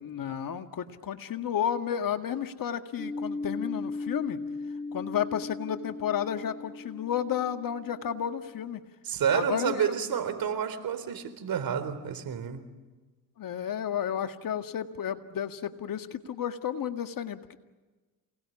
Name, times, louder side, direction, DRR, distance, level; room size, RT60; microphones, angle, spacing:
voice 1, 0.0-4.4 4.9-8.8 9.3-9.9 13.4-17.6, left 9 dB, 50° left, 8 dB, 2.0 m, -32 dB
sound 1, 3.0-8.5, left 3 dB, 10° left, 4.8 m, -37 dB
voice 2, 9.0-12.7, right 8 dB, 55° right, 9 dB, 3.8 m, -29 dB
28.0 x 19.0 x 9.8 m, 1.3 s
supercardioid pair, 65°, 42 cm